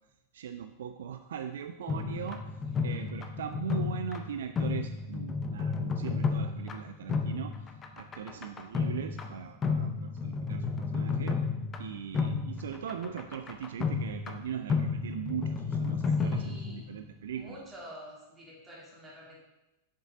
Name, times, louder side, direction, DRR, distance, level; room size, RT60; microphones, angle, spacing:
voice 1, 0.3-2.4 2.8-7.5 8.0-11.4 11.8-17.7, right 8 dB, 60° right, 8 dB, 0.4 m, -40 dB
sound 1, 1.9-17.0, left 5 dB, 25° left, 0.7 m, -32 dB
voice 2, 16.1-17.0 17.3-19.4, equal, 15° right, -5 dB, 2.8 m, -49 dB
7.3 x 7.0 x 3.8 m, 0.95 s
figure-of-eight pair, 90°, 0 cm